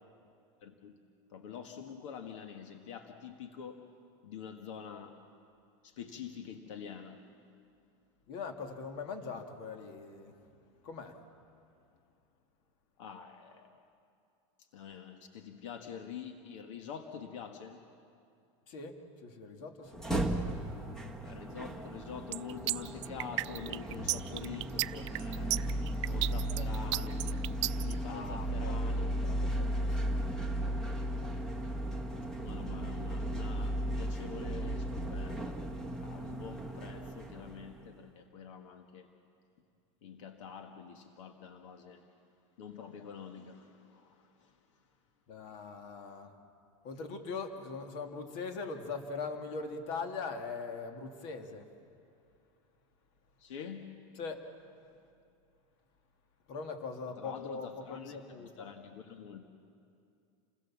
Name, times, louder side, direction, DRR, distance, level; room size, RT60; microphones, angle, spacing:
voice 1, 0.6-1.0 1.3-3.9 4.2-5.2 5.8-7.2 13.0-13.7 14.7-17.8 21.2-25.7 26.1-29.2 32.4-35.6 36.1-39.1 40.0-42.0 42.6-44.6 53.4-54.0 57.1-59.5, left 7 dB, 75° left, 5 dB, 1.8 m, -46 dB
voice 2, 8.3-10.4 10.8-11.2 18.7-20.0 28.1-30.1 45.3-46.3 46.8-51.7 54.2-54.4 56.5-58.7, left 4 dB, 50° left, 5 dB, 2.3 m, -41 dB
sound 1, 19.8-38.0, right 1 dB, 5° left, 1.4 m, -35 dB
sound 2, 22.3-27.9, right 18 dB, 65° right, 0.6 m, -33 dB
28.5 x 20.5 x 7.4 m, 2.5 s
supercardioid pair, 160°, 16 cm